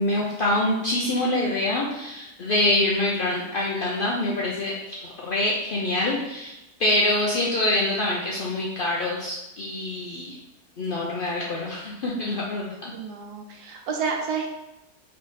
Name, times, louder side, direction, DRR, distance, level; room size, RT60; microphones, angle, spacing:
voice 1, 0.0-6.5 6.8-10.4 10.8-12.9, left 1 dB, 85° left, -3 dB, 0.4 m, -25 dB
voice 2, 12.9-14.5, right 5 dB, 80° right, 2 dB, 1.2 m, -30 dB
3.5 x 3.2 x 4.0 m, 0.93 s
omnidirectional pair, 1.6 m